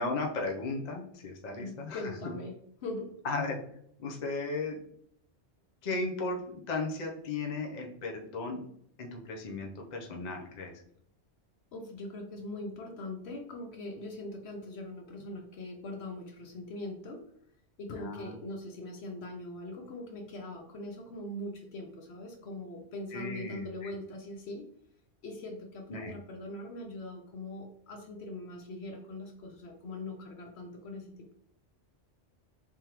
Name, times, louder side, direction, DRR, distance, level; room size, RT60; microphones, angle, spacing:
voice 1, 0.0-2.0 3.2-3.6 4.0-4.8 5.8-8.6 9.0-10.7 17.9-18.3 23.1-23.9 25.9-26.2, left 3 dB, 45° left, 1 dB, 0.7 m, -35 dB
voice 2, 1.6-3.1 11.7-17.2 17.8-24.7 25.2-31.3, left 2 dB, 70° left, 3 dB, 0.9 m, -41 dB
3.5 x 3.4 x 2.9 m, 0.68 s
omnidirectional pair, 1.2 m